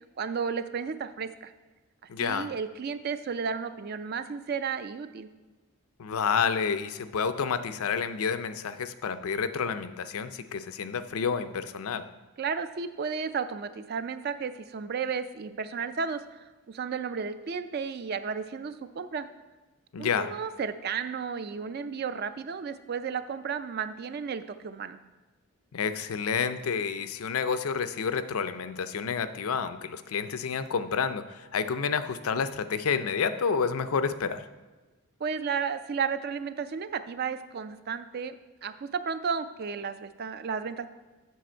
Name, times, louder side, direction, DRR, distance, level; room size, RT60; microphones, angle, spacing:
voice 1, 0.2-1.5 2.2-5.3 12.4-19.3 20.0-25.0 35.2-38.3 38.6-40.9, right 6 dB, 45° right, 12 dB, 0.3 m, -33 dB
voice 2, 2.1-2.5 6.0-12.1 19.9-20.3 25.7-34.4, left 6 dB, 75° left, 11 dB, 0.4 m, -29 dB
7.6 x 6.4 x 4.4 m, 1.2 s
head